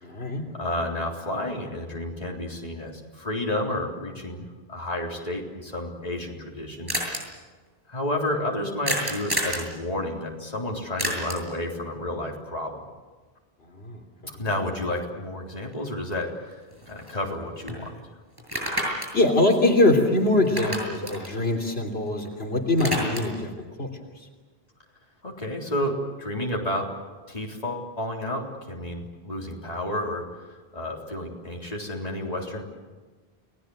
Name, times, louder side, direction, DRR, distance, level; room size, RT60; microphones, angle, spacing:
voice 1, 0.0-0.5 13.8-14.0 19.1-23.9, left 2 dB, 80° left, 1 dB, 3.5 m, -23 dB
voice 2, 0.5-7.0 7.9-12.8 14.4-18.0 25.2-26.9 27.3-32.6, left 1 dB, 40° left, -1 dB, 3.9 m, -31 dB
sound 1, 6.2-6.3 6.5-6.6 6.9-7.2 8.8-9.7 11.0-11.5 15.7-15.8 16.2-17.4 17.7-17.8 18.4-20.2 20.4-22.3 22.6-23.4, equal, 20° right, 7.6 m, -30 dB
30.0 x 19.5 x 7.9 m, 1.4 s
omnidirectional pair, 1.0 m